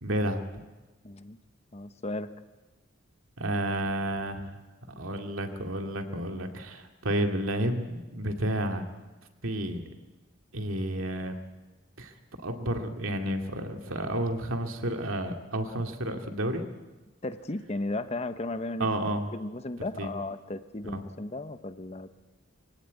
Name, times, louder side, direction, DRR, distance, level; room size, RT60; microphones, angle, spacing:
voice 1, 0.0-0.4 3.4-4.5 5.0-8.8 9.4-9.8 10.5-11.4 12.0-12.1 12.4-16.6 18.8-19.2 20.0-20.1 20.9-21.0, right 1 dB, 85° right, 4 dB, 2.3 m, -31 dB
voice 2, 1.0-1.4 1.7-2.3 17.2-18.9 19.3-22.1, left 2 dB, 30° left, 11 dB, 0.9 m, -35 dB
23.0 x 17.0 x 9.4 m, 1.2 s
head